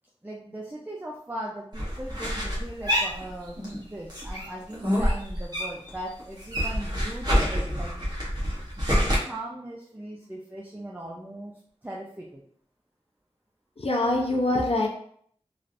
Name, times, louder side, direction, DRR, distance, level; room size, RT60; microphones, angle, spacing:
voice 1, 0.2-8.1 8.8-11.5 11.8-12.4, right 1 dB, 15° right, -3 dB, 0.5 m, -39 dB
sound 1, 1.7-3.8 4.1-5.9 6.2-9.2, equal, 40° right, 1.1 m, -27 dB
voice 2, 13.8-14.9, left 2 dB, 60° left, 0 dB, 0.7 m, -24 dB
3.3 x 2.5 x 2.5 m, 0.63 s
wide cardioid pair, 50°, 11 cm